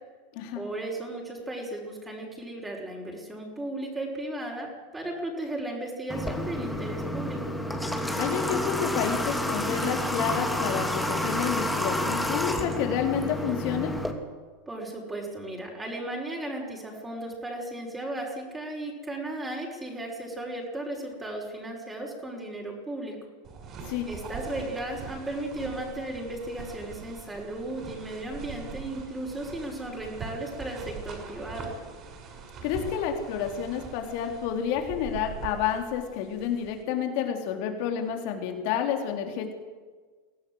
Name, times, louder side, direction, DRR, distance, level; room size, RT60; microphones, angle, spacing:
voice 1, 0.5-4.7 4.9-7.4 14.7-23.1 24.1-31.7, right 1 dB, 10° right, -1 dB, 5.6 m, -35 dB
Water / Water tap faucet, 6.1-14.1, left 1 dB, 5° left, 3.0 m, -29 dB
voice 2, 8.2-14.0 23.8-24.1 32.6-39.5, left 8 dB, 55° left, 4 dB, 3.9 m, -30 dB
sound 1, 23.4-36.8, right 5 dB, 40° right, 7.1 m, -42 dB
23.5 x 17.0 x 8.1 m, 1.4 s
hypercardioid pair, 90°, 0 cm